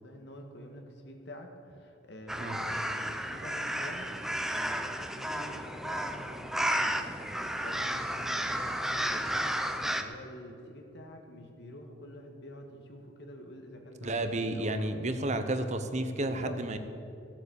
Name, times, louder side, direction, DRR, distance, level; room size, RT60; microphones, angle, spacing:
voice 1, 0.0-9.5 9.8-15.1 16.1-16.6, equal, 65° left, 4 dB, 1.7 m, -47 dB
sound 1, 2.3-10.0, equal, ahead, 0.6 m, -32 dB
voice 2, 14.0-16.8, right 2 dB, 40° right, 8 dB, 0.9 m, -31 dB
15.0 x 8.5 x 7.0 m, 2.7 s
head